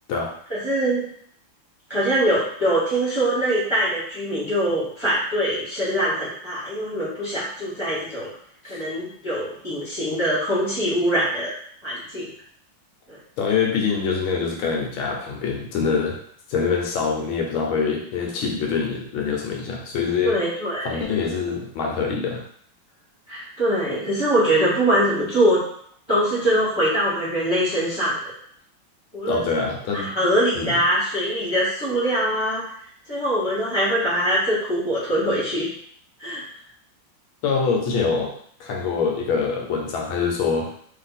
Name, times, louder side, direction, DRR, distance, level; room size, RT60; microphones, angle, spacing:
voice 1, 0.5-1.1 1.9-8.3 8.6-11.5 11.8-12.3 13.1-13.2 20.2-21.0 23.3-25.6 26.1-28.2 29.1-29.4 30.0-32.6 33.1-35.7 36.2-36.4, right 1 dB, 15° right, -9 dB, 1.1 m, -23 dB
voice 2, 13.4-16.2 16.5-20.4 20.8-22.4 29.3-30.1 30.5-30.8 37.4-38.3 38.6-40.7, left 5 dB, 75° left, 0 dB, 1.4 m, -24 dB
3.4 x 2.7 x 4.0 m, 0.63 s
omnidirectional pair, 2.3 m